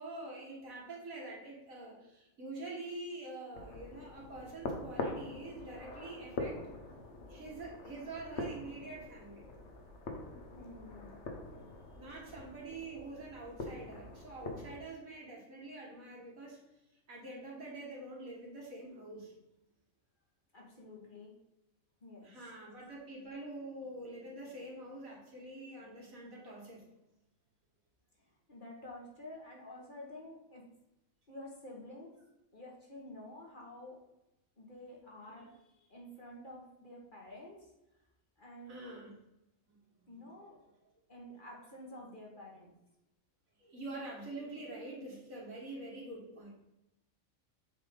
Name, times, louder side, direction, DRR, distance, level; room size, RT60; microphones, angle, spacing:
voice 1, 0.0-6.7 7.3-9.4 11.9-16.6 17.1-19.3 22.2-26.9 35.3-35.5 38.6-39.1 39.9-40.5 41.7-41.8 43.6-46.5, right 2 dB, 80° right, -3 dB, 2.4 m, -46 dB
sound 1, 3.5-14.8, left 2 dB, 55° left, 1.3 m, -44 dB
voice 2, 10.5-11.2 20.5-21.3 22.0-22.5 28.5-30.6 31.3-32.1 32.5-34.0 34.6-37.7 38.4-38.7 40.1-40.6 41.1-42.7, left 1 dB, 40° left, -2 dB, 1.6 m, -50 dB
7.3 x 3.7 x 5.3 m, 0.90 s
omnidirectional pair, 1.4 m